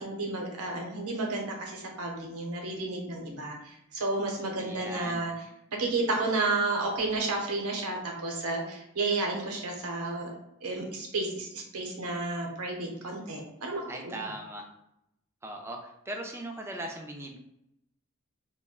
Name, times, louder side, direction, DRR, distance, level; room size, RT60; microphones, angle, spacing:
voice 1, 0.0-5.3 5.8-10.3 10.6-14.1, right 2 dB, 90° right, 0 dB, 0.7 m, -32 dB
voice 2, 4.6-5.3 13.9-14.6 15.4-17.4, right 1 dB, 10° right, 1 dB, 0.3 m, -39 dB
2.3 x 2.1 x 3.6 m, 0.81 s
head